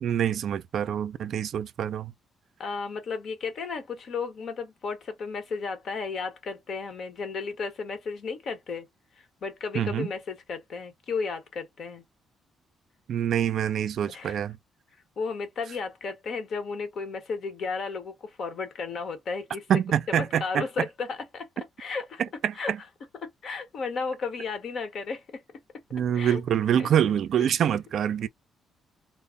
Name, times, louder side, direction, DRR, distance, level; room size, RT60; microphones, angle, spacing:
voice 1, 0.0-2.1 9.7-10.1 13.1-14.6 19.7-20.6 22.2-22.8 25.9-28.3, right 9 dB, 65° right, 0.3 m, -26 dB
voice 2, 2.6-8.9 9.2-12.0 14.1-14.4 15.2-19.6 20.1-21.5 21.8-22.2 22.5-22.7 23.2-25.4 25.7-25.8 26.1-26.4 26.8-26.9, left 4 dB, 60° left, 0.9 m, -34 dB
2.1 x 2.0 x 3.6 m
cardioid pair, 90°, 0 cm